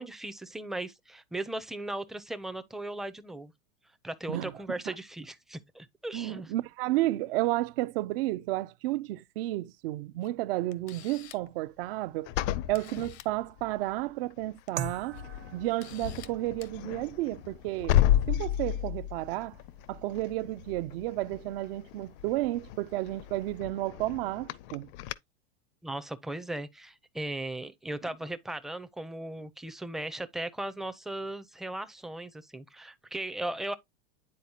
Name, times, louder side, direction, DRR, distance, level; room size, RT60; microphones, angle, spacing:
voice 1, 0.0-3.5 4.0-6.5 25.8-33.7, right 1 dB, ahead, 0.5 m, -37 dB
voice 2, 6.1-12.3 12.7-18.0 18.3-19.5 19.9-24.9, right 17 dB, 60° right, 0.5 m, -32 dB
Camera, 10.2-10.3 10.7-11.5 12.4-12.5 12.7-13.3 14.5-14.7 15.1-15.2 15.8-16.3 16.6-16.7, left 11 dB, 85° left, 0.9 m, -49 dB
sound 1, 12.3-13.8 14.3-14.6 14.8-25.1, left 12 dB, 55° left, 0.5 m, -33 dB
sound 2, 14.8-23.6, right 9 dB, 90° right, 1.1 m, -47 dB
9.7 x 4.2 x 2.8 m
supercardioid pair, 120°, 32 cm